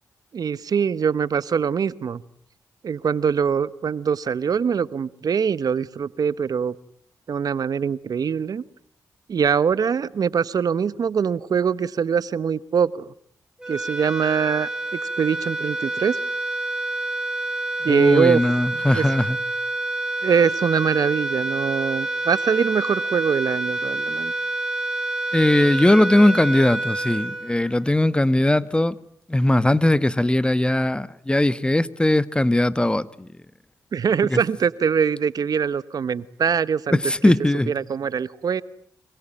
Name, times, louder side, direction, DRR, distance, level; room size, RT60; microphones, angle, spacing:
voice 1, 0.3-2.2 2.8-6.7 7.3-8.6 9.3-13.1 13.7-14.7 15.2-16.2 17.8-18.4 18.9-19.0 20.2-24.3 33.9-37.0 37.7-38.6, right 7 dB, 60° right, 1.1 m, -23 dB
sound 1, 13.6-28.2, right 2 dB, 10° right, 4.7 m, -28 dB
voice 2, 17.9-19.4 25.3-28.9 29.3-33.3 34.2-34.4 36.9-37.7, left 1 dB, 15° left, 1.3 m, -19 dB
26.0 x 23.5 x 8.9 m
supercardioid pair, 50°, 7 cm